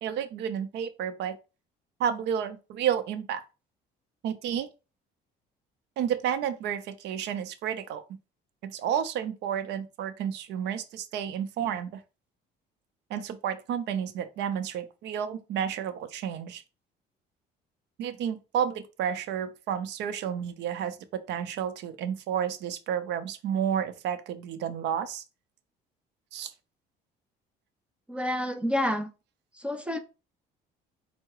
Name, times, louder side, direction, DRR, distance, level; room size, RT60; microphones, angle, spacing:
voice 1, 0.0-1.4 2.0-3.4 4.2-4.7 6.0-8.0 8.6-12.0 13.1-16.6 18.0-25.2 26.3-26.5, right 9 dB, 70° right, 0.6 m, -31 dB
voice 2, 28.1-29.1 29.6-30.0, left 1 dB, 5° right, 0.5 m, -28 dB
4.6 x 2.1 x 4.7 m
cardioid pair, 110°, 18 cm